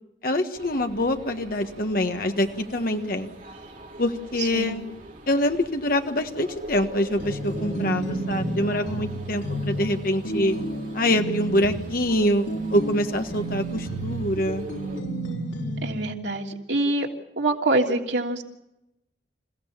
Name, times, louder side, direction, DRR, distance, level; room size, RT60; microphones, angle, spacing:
voice 1, 0.2-3.3 4.0-4.8 5.3-10.5 10.9-14.7, left 1 dB, 55° left, 5 dB, 1.5 m, -25 dB
sound 1, 0.5-15.0, right 1 dB, 50° right, 5.0 m, -42 dB
voice 2, 4.4-4.8 15.8-17.1 17.4-18.4, right 2 dB, 90° right, 1 dB, 3.0 m, -25 dB
sound 2, 7.2-16.1, right 1 dB, 90° left, 3.9 m, -31 dB
28.0 x 16.0 x 7.3 m, 0.90 s
head